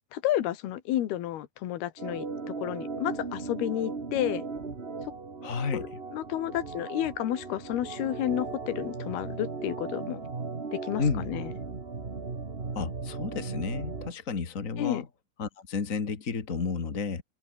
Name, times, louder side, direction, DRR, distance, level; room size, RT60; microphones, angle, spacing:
voice 1, 0.1-2.3 2.6-4.4 5.7-5.9 6.1-10.2 10.7-11.5 14.8-15.0, left 13 dB, 85° left, 3.6 m, -31 dB
Organ, 2.0-14.1, right 4 dB, 45° right, 0.7 m, -37 dB
voice 2, 5.4-6.0 11.0-11.3 12.7-15.1 15.4-17.2, left 5 dB, 35° left, 1.4 m, -32 dB
omnidirectional pair, 4.4 m